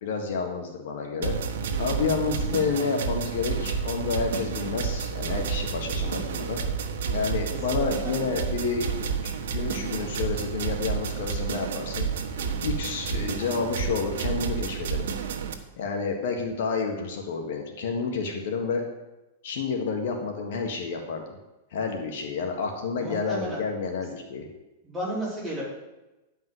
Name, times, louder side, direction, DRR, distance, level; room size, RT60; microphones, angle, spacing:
voice 1, 0.0-1.4 1.8-6.6 7.1-8.9 9.2-12.1 12.6-15.1 15.8-18.8 19.4-21.4 21.7-24.5, left 5 dB, 65° left, 3 dB, 1.6 m, -29 dB
sound 1, 1.2-15.5, right 6 dB, 85° right, 1.4 m, -30 dB
voice 2, 7.5-8.1 23.0-23.6 24.8-25.6, right 1 dB, ahead, -9 dB, 4.5 m, -33 dB
10.5 x 5.4 x 8.0 m, 1.0 s
supercardioid pair, 160°, 0 cm